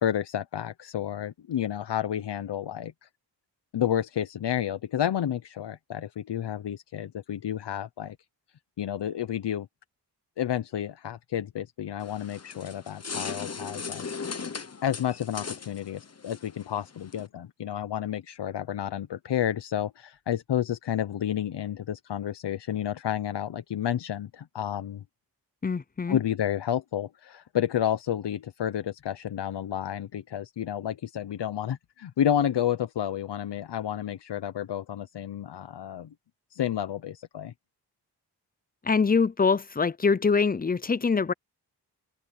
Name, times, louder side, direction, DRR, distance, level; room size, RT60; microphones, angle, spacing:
voice 1, 0.0-3.1 3.7-8.2 8.8-9.7 10.4-14.1 14.8-25.0 26.1-36.1 36.5-37.5, left 10 dB, 75° left, 0.8 m, -30 dB
sound 1, 12.0-17.3, left 5 dB, 35° left, 1.2 m, -38 dB
voice 2, 25.6-26.2 38.8-41.3, left 5 dB, 20° left, 0.5 m, -24 dB
cardioid pair, 65°, 41 cm